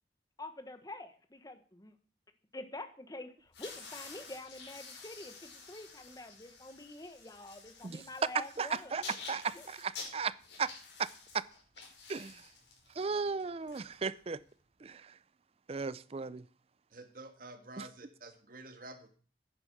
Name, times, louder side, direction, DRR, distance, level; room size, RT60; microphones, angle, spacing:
voice 1, 0.4-2.0 2.5-9.0 9.5-9.7, left 2 dB, 20° left, 1.2 m, -47 dB
sound 1, 3.5-14.5, left 4 dB, 80° left, 5.3 m, -50 dB
voice 2, 8.6-10.7 11.0-11.1 11.3-11.4 12.1-12.5 12.9-14.4 14.8-15.2 15.7-16.5 17.8-17.9, right 5 dB, 35° right, 0.4 m, -36 dB
voice 3, 16.9-19.1, right 2 dB, 50° right, 1.7 m, -49 dB
10.0 x 9.8 x 6.1 m
head